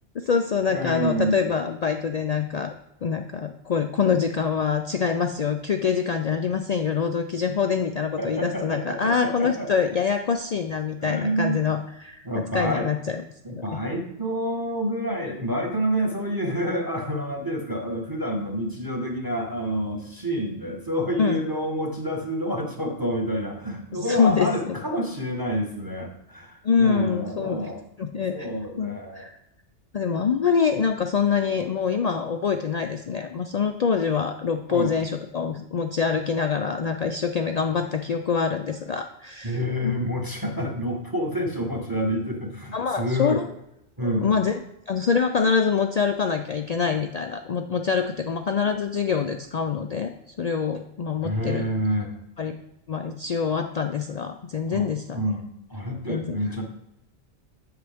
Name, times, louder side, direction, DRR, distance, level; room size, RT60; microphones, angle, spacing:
voice 1, 0.2-2.7 3.0-13.2 13.5-13.8 21.2-21.4 23.9-24.7 26.6-27.6 28.0-29.3 29.9-39.6 39.8-39.9 42.7-43.5 44.2-44.5 44.9-50.1 50.4-51.7 52.4-52.5 52.9-55.3 56.1-56.4, left 6 dB, 70° left, 6 dB, 0.3 m, -25 dB
voice 2, 0.7-1.5 8.2-9.7 11.0-11.7 12.2-12.9 13.4-27.8 28.3-29.3 34.7-35.0 39.4-43.4 44.0-44.3 51.2-52.1 54.7-54.9 55.1-56.6, equal, 20° right, 0 dB, 1.2 m, -28 dB
8.0 x 6.8 x 3.5 m, 0.84 s
omnidirectional pair, 1.2 m